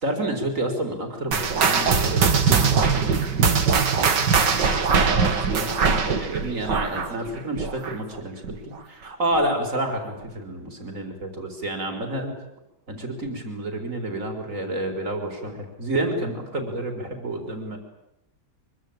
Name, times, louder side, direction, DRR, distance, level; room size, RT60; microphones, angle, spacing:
voice 1, 0.0-3.4 4.6-4.8 5.1-12.3 12.9-17.8, right 1 dB, 50° right, 5 dB, 4.7 m, -29 dB
sound 1, 1.3-8.2 8.4-8.8 9.3-9.4 10.2-10.3, right 5 dB, 90° right, 2.6 m, -21 dB
24.5 x 23.5 x 8.9 m, 0.85 s
omnidirectional pair, 1.8 m